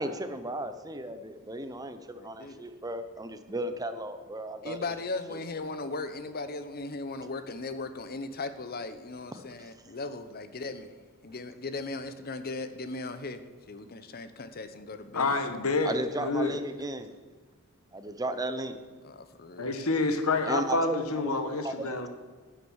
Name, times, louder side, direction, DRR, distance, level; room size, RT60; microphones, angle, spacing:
voice 1, 0.0-4.8 5.3-5.4 15.8-17.1 17.9-18.8 20.5-22.1, right 1 dB, 15° right, 9 dB, 0.8 m, -35 dB
voice 2, 2.1-2.6 4.6-10.9 11.2-13.4 13.7-15.4 19.0-19.7, left 3 dB, 45° left, 10 dB, 0.8 m, -38 dB
voice 3, 15.1-16.6 19.6-22.1, left 3 dB, 70° left, 7 dB, 1.3 m, -28 dB
11.0 x 7.7 x 6.4 m, 1.5 s
head